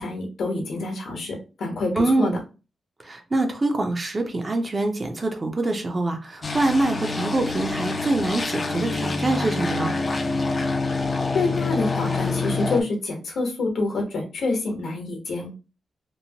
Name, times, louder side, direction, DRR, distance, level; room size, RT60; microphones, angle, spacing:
voice 1, 0.0-2.3 11.3-15.5, left 3 dB, 70° left, 2 dB, 1.0 m, -27 dB
voice 2, 2.0-2.4 3.0-9.9, right 2 dB, 30° right, 4 dB, 0.5 m, -24 dB
sound 1, 6.4-12.8, left 3 dB, 30° left, 0.4 m, -26 dB
3.0 x 2.0 x 2.7 m, 0.32 s
wide cardioid pair, 125°, 0 cm